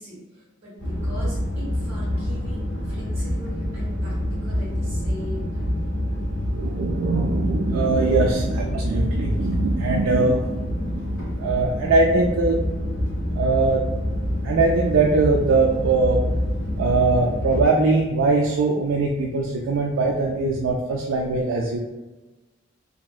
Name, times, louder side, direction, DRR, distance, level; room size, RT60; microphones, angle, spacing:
voice 1, 0.0-4.1 4.4-5.7, left 1 dB, 30° right, -10 dB, 1.4 m, -40 dB
sound 1, 0.8-17.6, left 1 dB, 85° left, 1.5 m, -26 dB
voice 2, 6.5-12.7 13.3-13.9 14.4-16.2 16.8-21.8, right 3 dB, 80° right, -1 dB, 0.4 m, -21 dB
2.9 x 2.7 x 2.3 m, 1.1 s
head